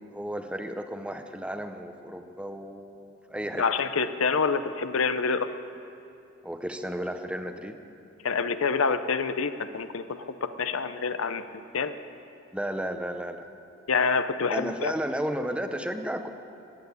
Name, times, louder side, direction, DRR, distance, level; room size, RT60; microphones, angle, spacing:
voice 1, 0.1-3.6 6.4-7.8 12.5-13.5 14.5-16.3, equal, 5° right, 7 dB, 0.7 m, -33 dB
voice 2, 3.6-5.5 8.2-11.4 11.7-11.9 13.9-14.9, left 5 dB, 85° left, 11 dB, 0.7 m, -27 dB
15.0 x 9.1 x 9.6 m, 2.7 s
head